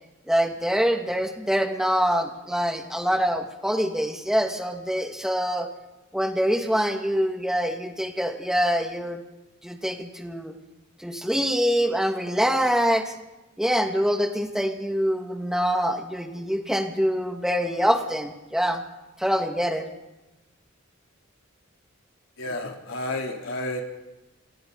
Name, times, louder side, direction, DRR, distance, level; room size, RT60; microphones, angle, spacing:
voice 1, 0.3-5.7 6.1-9.2 9.6-10.5 11.0-13.1 13.6-18.8 19.2-19.9, equal, 5° right, 3 dB, 2.0 m, -25 dB
voice 2, 22.4-23.8, left 1 dB, 85° left, 1 dB, 3.5 m, -31 dB
28.0 x 26.0 x 4.1 m, 1.0 s
head